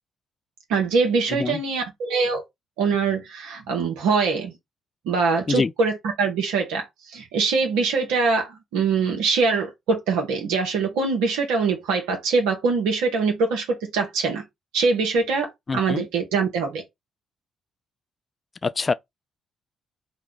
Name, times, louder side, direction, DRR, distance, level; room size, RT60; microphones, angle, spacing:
voice 1, 0.7-2.4 2.8-4.5 5.0-14.4 14.7-16.8, right 4 dB, 80° right, 0.9 m, -23 dB
voice 2, 1.3-1.6 5.5-5.7 15.7-16.1 18.6-18.9, left 4 dB, 35° left, 0.3 m, -24 dB
3.1 x 2.3 x 3.8 m
hypercardioid pair, 50°, 0 cm